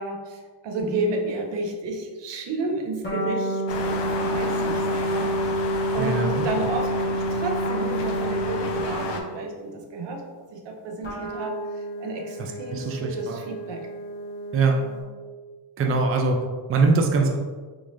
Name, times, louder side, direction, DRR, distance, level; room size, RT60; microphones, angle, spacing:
voice 1, 0.0-5.6 5.9-10.2 10.5-13.9 15.8-16.0, right 2 dB, 90° right, 2 dB, 0.7 m, -32 dB
sound 1, 0.8-1.4 3.0-9.4 11.0-15.0, equal, 25° left, 1.1 m, -29 dB
sound 2, 3.7-9.2, left 4 dB, 80° left, 0.6 m, -32 dB
voice 2, 6.0-6.5 12.4-13.4 14.5-14.8 15.8-16.4 16.7-17.4, right 3 dB, 35° right, 2 dB, 0.4 m, -22 dB
3.6 x 3.1 x 2.5 m, 1.4 s
wide cardioid pair, 140°, 41 cm